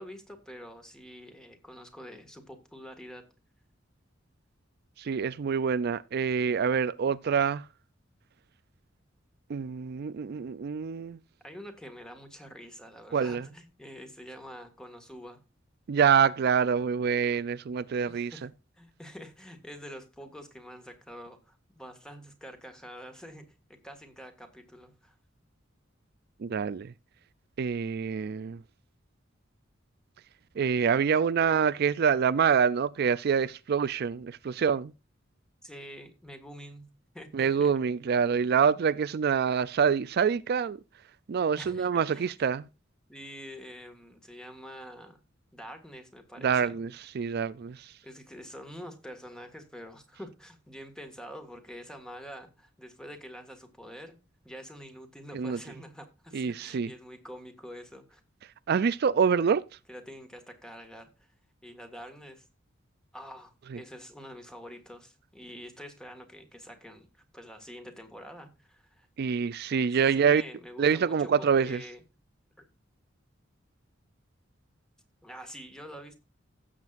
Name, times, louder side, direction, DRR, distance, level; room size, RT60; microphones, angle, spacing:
voice 1, 0.0-3.2 11.4-15.4 18.1-18.5 18.8-25.1 35.6-36.9 37.1-37.7 41.6-42.3 43.1-45.2 45.5-46.8 48.0-54.2 54.4-58.2 59.9-61.3 61.6-62.5 63.1-69.1 69.9-72.0 72.6-72.7 75.2-76.2, equal, 5° left, 1.8 m, -46 dB
voice 2, 5.0-7.6 9.5-11.2 13.1-13.4 15.9-18.3 26.4-26.9 27.6-28.6 30.6-34.9 37.3-40.8 41.3-42.7 46.4-47.9 55.3-55.6 56.3-56.9 58.7-59.6 69.2-70.4 70.8-71.8, right 6 dB, 55° right, 0.4 m, -26 dB
16.5 x 7.4 x 2.5 m
head